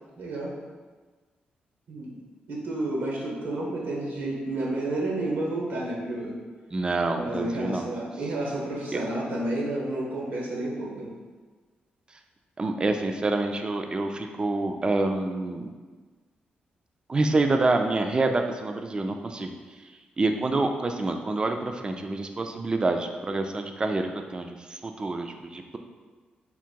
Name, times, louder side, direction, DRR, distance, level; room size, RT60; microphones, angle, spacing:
voice 1, 0.2-0.5 1.9-2.2 2.5-6.4 7.1-11.1, right 1 dB, 80° right, -3 dB, 0.9 m, -30 dB
voice 2, 6.7-7.9 12.6-15.7 17.1-19.5 20.2-25.8, right 2 dB, 25° right, 5 dB, 0.3 m, -27 dB
3.7 x 2.2 x 4.4 m, 1.4 s
cardioid pair, 85°, 3 cm